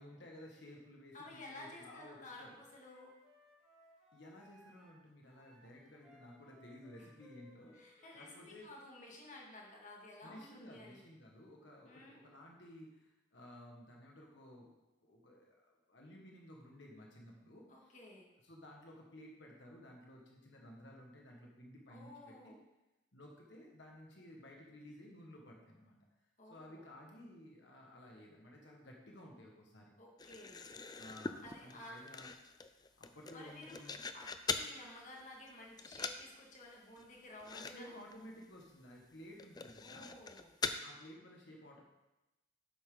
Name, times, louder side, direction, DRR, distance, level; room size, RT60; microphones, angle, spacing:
voice 1, 0.0-2.5 4.1-8.7 10.2-14.7 15.0-17.9 18.4-22.5 23.1-26.0 26.5-29.9 31.0-32.3 33.0-34.0 37.5-40.1 40.8-41.8, left 1 dB, 60° left, -1 dB, 1.6 m, -55 dB
voice 2, 1.1-3.1 7.7-11.0 11.9-12.2 17.7-18.3 21.9-22.6 26.4-26.9 30.0-30.6 31.4-32.0 33.3-33.8 34.1-37.9 39.8-40.5, left 1 dB, 35° left, -2 dB, 2.1 m, -53 dB
Wind instrument woodwind instrument, 2.0-4.9 5.2-8.4, left 2 dB, 5° right, 2.5 m, -64 dB
sound 1, 30.2-34.7 35.2-35.5 35.8-36.3 36.5-36.6 37.0-37.1 37.4-37.8 38.0-38.1 38.6-38.7 39.4-40.8, left 4 dB, 20° left, 0.4 m, -42 dB
10.0 x 8.1 x 3.9 m, 0.99 s
head